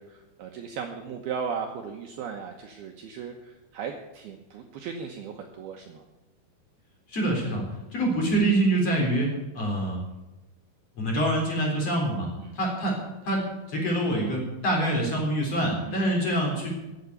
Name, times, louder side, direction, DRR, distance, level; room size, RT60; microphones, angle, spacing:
voice 1, 0.0-6.0 12.4-12.6 15.8-16.1, right 6 dB, 70° right, 3 dB, 2.5 m, -37 dB
voice 2, 7.1-7.6 7.9-10.0 10.9-12.3 12.5-13.0 13.2-13.4 13.7-16.7, right 1 dB, 35° left, -1 dB, 4.6 m, -25 dB
15.5 x 8.7 x 8.0 m, 1.0 s
omnidirectional pair, 5.5 m